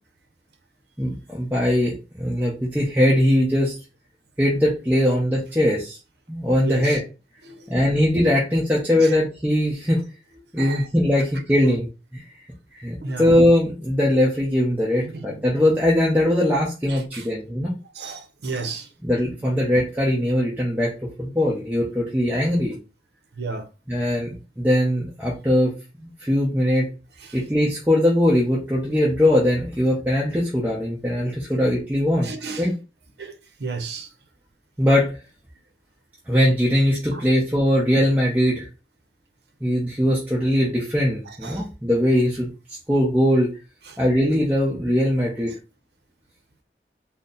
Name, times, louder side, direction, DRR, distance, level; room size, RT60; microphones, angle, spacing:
voice 1, 1.0-3.8 4.4-6.0 6.3-7.0 7.7-10.0 10.5-11.9 12.1-12.2 12.8-17.7 19.0-20.9 21.2-22.8 23.9-24.3 24.6-25.7 26.0-26.9 27.3-32.7 34.8-35.2 36.3-38.7 39.6-42.5 42.9-43.5 44.0-45.5, left 1 dB, 10° right, 0.7 m, -21 dB
voice 2, 6.6-7.0 7.4-7.8 9.0-9.1 10.6-10.9 13.0-13.3 15.0-15.4 16.9-17.3 17.9-18.9 23.4-23.7 27.2-27.4 32.2-32.7 33.2-34.1 37.1-37.3 41.3-41.7 43.9-44.0, right 4 dB, 75° right, 0.7 m, -33 dB
4.0 x 2.1 x 3.8 m
head